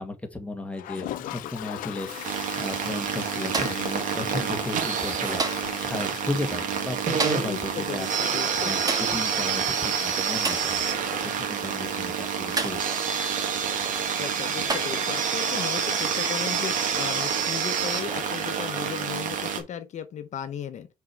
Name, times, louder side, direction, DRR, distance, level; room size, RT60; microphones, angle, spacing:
voice 1, 0.0-8.1 8.5-12.8, left 2 dB, 10° left, 1.8 m, -34 dB
Toilet flush, 0.7-7.4 7.8-7.9 8.1-8.2 8.4-8.5 11.1-11.2 12.5-12.6, left 13 dB, 90° left, 0.7 m, -40 dB
sound 1, 2.1-19.6, right 7 dB, 75° right, 2.0 m, -28 dB
sound 2, 3.5-3.9 5.4-5.8 7.2-7.6 8.9-9.2 10.4-10.8 12.6-12.9 14.0-14.1 14.7-15.1 16.2-16.5 18.1-18.3, right 3 dB, 25° right, 1.6 m, -31 dB
voice 2, 7.3-8.7 14.1-20.9, left 8 dB, 60° left, 0.9 m, -36 dB
6.1 x 4.6 x 4.5 m
cardioid pair, 95°, 14 cm